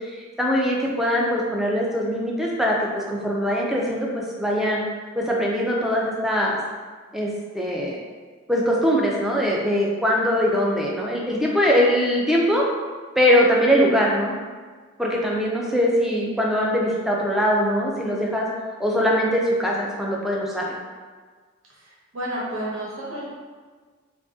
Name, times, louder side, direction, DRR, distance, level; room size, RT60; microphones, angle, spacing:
voice 1, 0.0-4.8 5.2-6.6 7.1-8.0 8.5-12.7 13.2-14.3 15.0-18.5 18.8-20.8, equal, ahead, -3 dB, 0.4 m, -22 dB
voice 2, 22.1-23.3, right 1 dB, 75° right, -7 dB, 1.0 m, -30 dB
3.1 x 2.6 x 3.5 m, 1.5 s
head